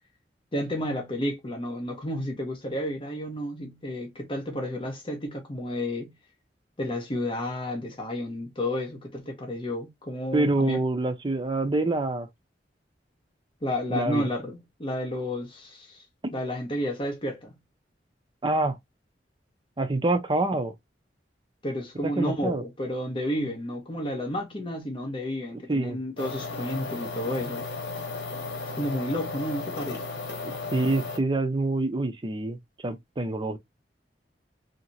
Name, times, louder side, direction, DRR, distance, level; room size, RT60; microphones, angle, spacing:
voice 1, 0.5-6.1 6.8-10.8 13.6-16.0 16.3-17.5 21.6-27.7 28.8-30.1, left 1 dB, 30° left, 1.0 m, -31 dB
voice 2, 10.3-12.3 13.9-14.3 18.4-18.8 19.8-20.7 22.2-22.6 25.5-26.0 30.4-32.6 32.8-33.6, right 2 dB, 30° right, 0.5 m, -26 dB
sound 1, 26.2-31.2, left 3 dB, 90° left, 1.0 m, -35 dB
2.8 x 2.8 x 2.6 m
head